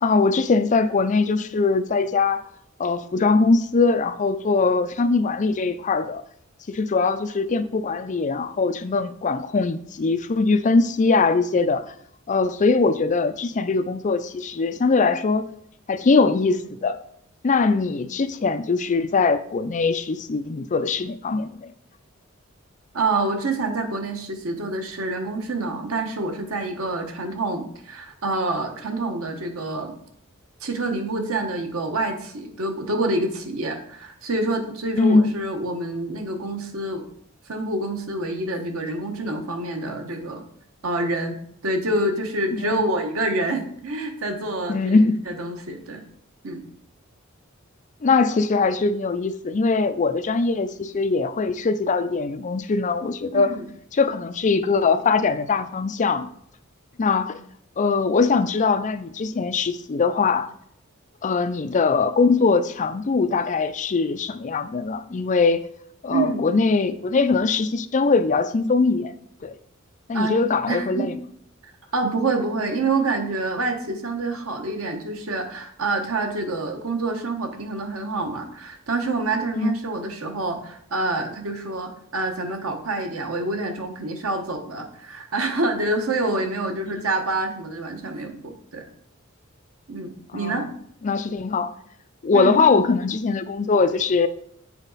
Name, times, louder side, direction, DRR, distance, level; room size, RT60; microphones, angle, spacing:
voice 1, 0.0-2.4 2.8-6.2 6.7-11.8 12.3-15.4 15.9-17.0 17.4-21.7 35.0-35.3 42.5-42.7 44.7-45.2 48.0-53.5 53.9-56.3 57.0-57.4 57.8-60.5 61.2-65.6 66.0-69.1 69.4-69.6 70.1-71.1 79.5-79.7 90.3-90.7 91.0-91.7 92.2-94.3, left 4 dB, 35° left, 0.4 m, -21 dB
voice 2, 22.9-29.9 30.6-37.1 37.5-40.4 40.8-41.4 41.6-46.0 46.4-46.6 53.3-53.7 66.1-66.5 70.1-70.4 70.7-71.1 71.6-88.9 89.9-90.7 92.3-92.6, right 2 dB, 90° right, 1.1 m, -27 dB
7.3 x 4.0 x 4.0 m
head